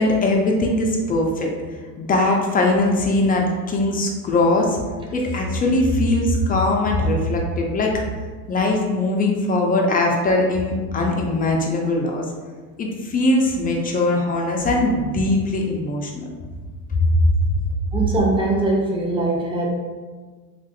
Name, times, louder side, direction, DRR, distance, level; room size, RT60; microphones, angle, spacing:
voice 1, 0.0-1.5 2.0-4.8 5.1-7.9 8.5-12.2 12.8-16.2 17.2-17.3, left 2 dB, 20° left, 0 dB, 0.3 m, -20 dB
voice 2, 17.9-19.7, right 2 dB, 10° right, -3 dB, 0.6 m, -21 dB
2.9 x 2.5 x 2.6 m, 1.4 s
hypercardioid pair, 85°, 44 cm